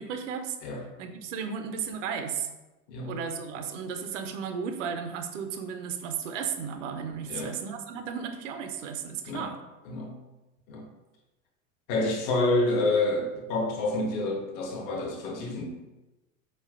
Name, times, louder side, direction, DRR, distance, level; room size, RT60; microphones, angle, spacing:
voice 1, 0.0-0.5 1.0-2.5 3.0-9.6, right 7 dB, 60° right, 6 dB, 0.5 m, -34 dB
voice 2, 2.9-3.2 7.3-7.6 9.2-9.5 9.8-10.2 10.7-10.9 11.9-15.6, left 2 dB, 45° left, 1 dB, 0.7 m, -28 dB
4.1 x 2.2 x 2.3 m, 1.1 s
figure-of-eight pair, 80°, 43 cm